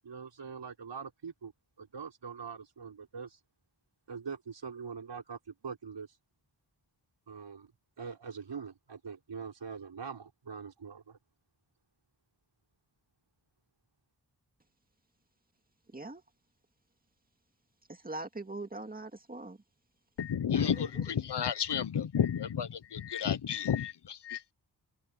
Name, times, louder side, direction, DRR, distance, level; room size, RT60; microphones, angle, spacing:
voice 1, 0.0-1.5 1.8-3.3 4.1-5.4 5.6-6.1 7.3-7.7 8.0-11.0, right 6 dB, 85° right, 6.3 m, -43 dB
voice 2, 15.9-16.2 17.9-19.6 20.5-21.0, right 2 dB, 20° right, 2.2 m, -42 dB
voice 3, 20.2-24.5, left 8 dB, 75° left, 1.0 m, -31 dB
wide cardioid pair, 105°, 41 cm